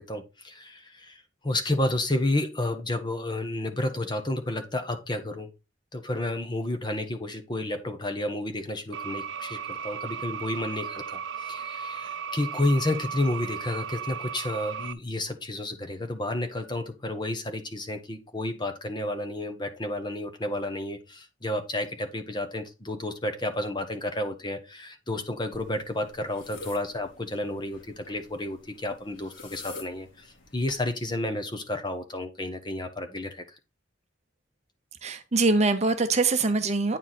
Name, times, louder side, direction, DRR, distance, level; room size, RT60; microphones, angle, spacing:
voice 1, 0.0-5.5 5.9-33.6, left 1 dB, 25° left, 7 dB, 1.1 m, -31 dB
sound 1, 8.9-14.9, right 7 dB, 70° right, 0.5 m, -36 dB
sound 2, 25.5-30.8, left 3 dB, 85° left, 2.0 m, -47 dB
voice 2, 35.0-37.0, right 3 dB, 35° right, 8 dB, 0.8 m, -23 dB
9.1 x 4.7 x 4.1 m, 0.26 s
head